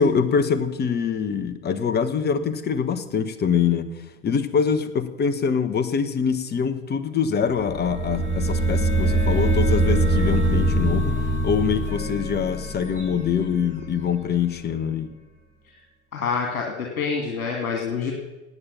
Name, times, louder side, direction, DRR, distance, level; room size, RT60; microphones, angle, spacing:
voice 1, 0.0-15.1, left 6 dB, 25° left, 12 dB, 1.4 m, -24 dB
sound 1, 7.6-14.3, right 1 dB, 15° right, 6.1 m, -23 dB
voice 2, 16.1-18.1, left 5 dB, 70° left, 1 dB, 2.4 m, -27 dB
18.0 x 9.0 x 7.0 m, 1.1 s
figure-of-eight pair, 85°, 43 cm